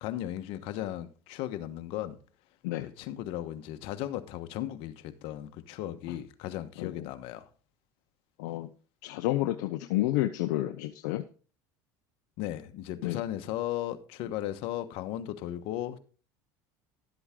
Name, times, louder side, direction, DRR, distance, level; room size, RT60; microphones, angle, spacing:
voice 1, 0.0-2.2 2.8-7.5 12.4-16.0, left 13 dB, 65° left, 1.2 m, -36 dB
voice 2, 8.4-8.7 9.0-11.3 13.0-13.2, left 15 dB, 85° left, 0.7 m, -30 dB
11.5 x 8.0 x 3.8 m
supercardioid pair, 105°, 10 cm